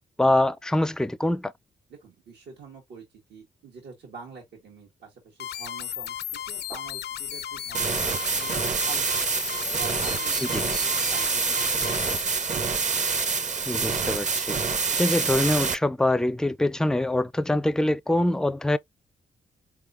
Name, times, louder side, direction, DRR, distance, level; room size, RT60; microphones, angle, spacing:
voice 1, 0.2-1.5 10.4-10.6 13.7-14.6 15.0-18.8, left 1 dB, 5° left, 0.4 m, -24 dB
voice 2, 1.9-6.2 6.5-9.1 9.6-12.1, right 5 dB, 80° right, 1.5 m, -46 dB
sound 1, 5.4-12.2, left 10 dB, 65° left, 0.4 m, -35 dB
sound 2, 7.7-15.7, right 5 dB, 45° right, 0.8 m, -26 dB
4.4 x 3.5 x 2.5 m
cardioid pair, 75°, 18 cm